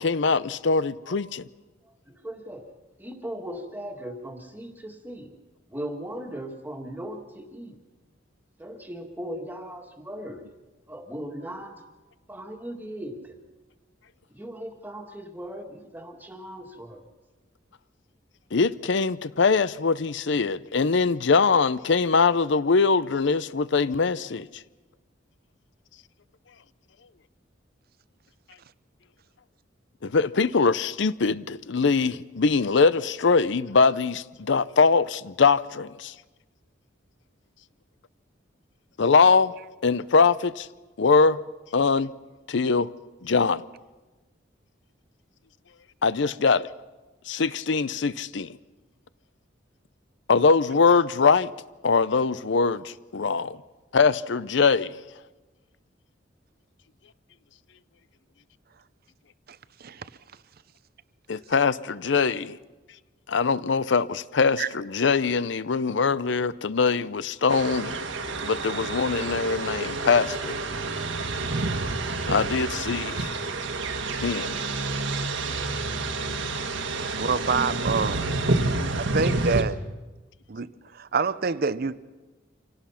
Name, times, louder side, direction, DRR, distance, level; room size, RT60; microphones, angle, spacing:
voice 1, 0.0-1.4 18.5-24.6 30.0-36.2 39.0-39.5 39.8-40.7 41.0-41.4 41.7-42.1 42.5-42.9 43.2-43.6 46.0-46.7 47.3-48.6 50.3-51.5 51.8-53.6 53.9-55.0 61.3-62.6 63.3-68.0 68.4-70.6 72.3-73.3 74.2-74.6, left 4 dB, 65° left, 0.6 m, -22 dB
voice 2, 2.1-2.7 3.0-5.3 5.7-7.8 8.6-10.4 10.9-11.8 12.3-13.4 14.3-17.0, right 1 dB, 10° right, 1.9 m, -38 dB
voice 3, 59.5-60.0 64.6-64.7 77.2-78.3 79.0-79.8 80.5-81.9, right 5 dB, 50° right, 0.7 m, -27 dB
sound 1, 67.5-79.6, right 3 dB, 75° right, 1.6 m, -29 dB
26.0 x 17.5 x 5.8 m
head